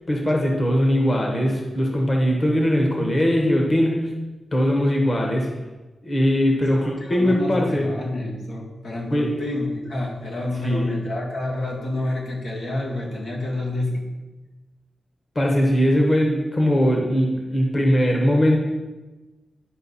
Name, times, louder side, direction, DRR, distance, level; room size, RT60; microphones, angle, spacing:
voice 1, 0.1-4.1 4.5-5.5 6.0-7.8 9.1-9.4 10.6-10.9 15.3-18.6, equal, 30° left, 0 dB, 1.2 m, -20 dB
voice 2, 6.7-14.0, left 1 dB, 90° left, -3 dB, 2.3 m, -28 dB
11.5 x 5.1 x 4.2 m, 1.2 s
wide cardioid pair, 170°, 0 cm